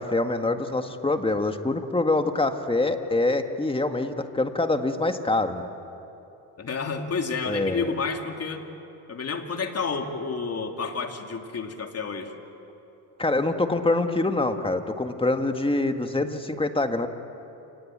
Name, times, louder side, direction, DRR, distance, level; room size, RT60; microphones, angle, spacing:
voice 1, 0.0-5.7 7.5-7.9 13.2-17.1, left 2 dB, 15° left, 6 dB, 1.9 m, -25 dB
voice 2, 6.6-8.6 9.1-12.3, left 4 dB, 40° left, 4 dB, 2.9 m, -30 dB
28.5 x 19.0 x 8.9 m, 2.9 s
supercardioid pair, 80°, 37 cm